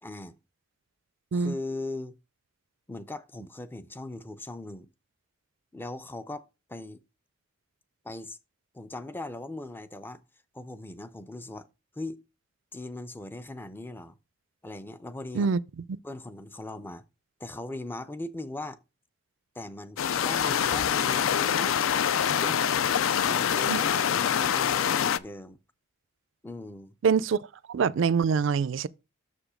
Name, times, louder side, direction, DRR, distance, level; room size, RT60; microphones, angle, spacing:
voice 1, 0.0-0.4 1.3-2.1 2.9-4.9 5.7-6.4 6.7-7.0 8.0-8.4 8.7-10.2 10.5-11.7 12.0-12.2 12.7-14.2 14.6-15.5 16.0-17.0 17.4-18.8 19.6-21.8 22.2-22.8 23.2-25.6 26.4-27.0, left 2 dB, 10° left, 0.4 m, -39 dB
sound 1, 20.0-25.2, left 8 dB, 75° left, 0.4 m, -25 dB
voice 2, 27.0-27.4 27.7-28.9, right 5 dB, 65° right, 0.4 m, -24 dB
6.8 x 5.0 x 4.9 m
head